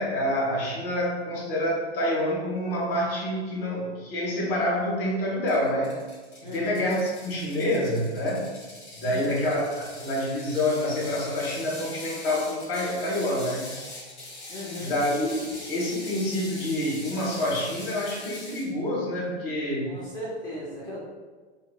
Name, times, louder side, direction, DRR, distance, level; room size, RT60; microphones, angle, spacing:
voice 1, 0.0-5.9 6.4-8.5 9.0-13.7 14.8-20.0, left 1 dB, 55° left, -4 dB, 1.1 m, -27 dB
Ratchet pawl, 5.5-18.7, left 2 dB, 75° left, 1.0 m, -42 dB
voice 2, 6.4-6.7 9.1-9.3 14.5-14.9 19.9-21.0, left 1 dB, 15° left, -6 dB, 0.3 m, -37 dB
3.0 x 2.2 x 2.2 m, 1.4 s
figure-of-eight pair, 105°, 33 cm